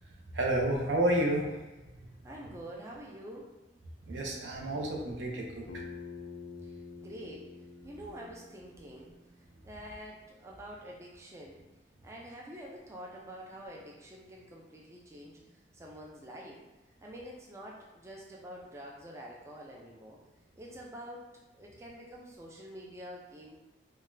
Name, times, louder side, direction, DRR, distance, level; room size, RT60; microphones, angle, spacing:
voice 1, 0.3-1.5 4.1-5.7, right 1 dB, 70° right, 0 dB, 0.6 m, -30 dB
voice 2, 2.2-3.5 7.0-9.1 9.6-11.6 12.0-15.4 15.7-16.6 17.0-20.2 20.6-21.2 21.5-23.6, equal, 15° right, -2 dB, 0.3 m, -47 dB
Bass guitar, 5.7-10.0, left 4 dB, 90° left, 0.4 m, -48 dB
3.8 x 2.1 x 2.6 m, 1.1 s
head